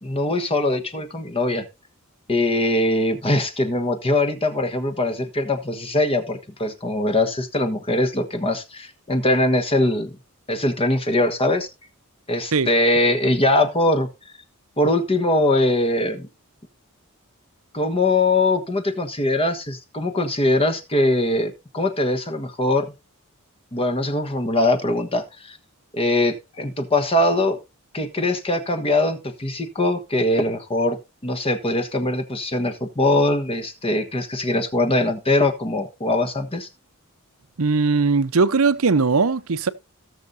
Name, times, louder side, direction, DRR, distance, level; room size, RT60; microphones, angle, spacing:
voice 1, 0.0-1.6 2.3-10.1 10.5-11.7 12.3-14.1 14.8-16.3 17.7-22.9 23.7-25.6 25.9-27.6 27.9-31.0 31.2-36.7, left 1 dB, 25° left, 1.3 m, -22 dB
voice 2, 37.6-39.7, right 4 dB, 70° right, 0.8 m, -19 dB
18.0 x 6.7 x 2.7 m
head